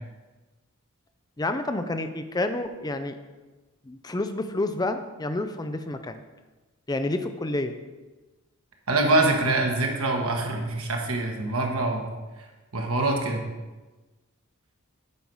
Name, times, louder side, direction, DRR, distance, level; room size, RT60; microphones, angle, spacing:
voice 1, 1.4-3.2 3.9-6.2 6.9-7.7, left 2 dB, 20° left, 8 dB, 0.5 m, -29 dB
voice 2, 8.9-12.0 12.7-13.4, right 2 dB, 85° right, 1 dB, 1.4 m, -24 dB
8.4 x 4.7 x 5.4 m, 1.2 s
head